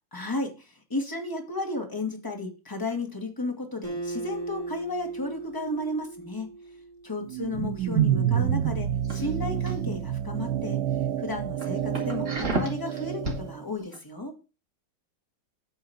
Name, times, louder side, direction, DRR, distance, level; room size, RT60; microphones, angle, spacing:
voice 1, 0.1-6.5 7.0-10.8 11.2-14.4, left 2 dB, 10° left, 2 dB, 1.9 m, -33 dB
Acoustic guitar, 3.8-7.3, right 2 dB, 20° right, 2.8 m, -37 dB
sound 1, 7.3-13.6, right 10 dB, 65° right, 1.1 m, -28 dB
sound 2, 9.0-9.9 10.4-10.6 11.1-11.2 11.6-13.4 13.8-14.0, right 2 dB, 40° right, 2.6 m, -32 dB
9.0 x 4.6 x 7.2 m, 0.30 s
omnidirectional pair, 2.1 m